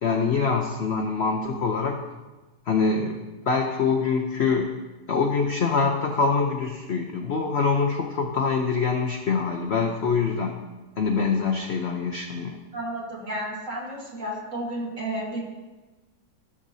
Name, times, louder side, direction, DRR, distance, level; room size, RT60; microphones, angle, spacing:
voice 1, 0.0-2.0 2.7-4.7 5.1-10.5 11.0-12.6, left 5 dB, 90° left, 2 dB, 0.5 m, -24 dB
voice 2, 12.7-15.4, right 1 dB, 40° right, -3 dB, 2.0 m, -32 dB
15.5 x 6.5 x 2.7 m, 1.2 s
omnidirectional pair, 2.1 m